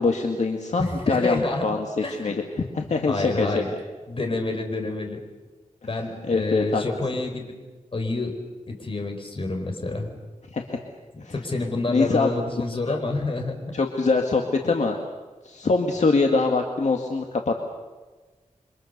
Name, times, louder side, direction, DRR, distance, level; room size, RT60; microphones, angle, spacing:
voice 1, 0.0-3.6 6.2-6.8 10.5-10.8 11.2-11.3 11.9-12.3 12.9-13.0 13.7-15.0 15.4-17.6, left 3 dB, 65° left, 2 dB, 2.0 m, -23 dB
voice 2, 0.8-1.7 2.0-2.3 3.0-3.7 4.1-5.2 5.9-7.4 7.9-8.4 8.7-10.2 11.1-13.7, left 2 dB, 45° left, 4 dB, 4.3 m, -28 dB
28.0 x 25.0 x 6.7 m, 1.3 s
wide cardioid pair, 115°, 13 cm